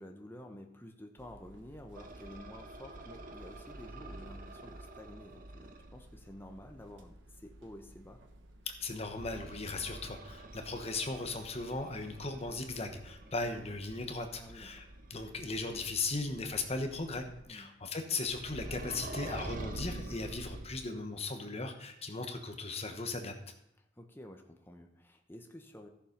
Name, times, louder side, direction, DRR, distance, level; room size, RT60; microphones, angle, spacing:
voice 1, 0.0-8.2 14.4-14.9 17.5-17.7 23.8-25.9, left 1 dB, 10° left, 3 dB, 1.0 m, -51 dB
sound 1, 1.2-17.4, right 1 dB, 70° right, 1.3 m, -57 dB
sound 2, 1.9-6.0 9.1-15.4 18.3-21.1, right 2 dB, 45° right, 1.1 m, -47 dB
voice 2, 8.6-23.3, left 3 dB, 30° left, 5 dB, 1.2 m, -37 dB
14.0 x 7.3 x 5.3 m, 0.80 s
head